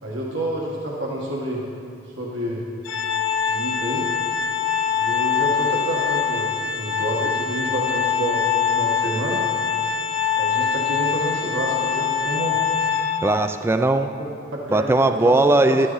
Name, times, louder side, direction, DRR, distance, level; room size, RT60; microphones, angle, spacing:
voice 1, 0.0-1.7 2.2-2.6 3.5-4.1 4.9-9.5 10.4-12.6 14.2-15.8, right 1 dB, 70° right, -3 dB, 1.5 m, -29 dB
Organ, 2.9-13.6, left 7 dB, 80° left, 0.7 m, -23 dB
voice 2, 13.2-14.1 14.7-15.9, right 2 dB, 15° right, 8 dB, 0.3 m, -18 dB
12.5 x 11.5 x 4.0 m, 2.3 s
head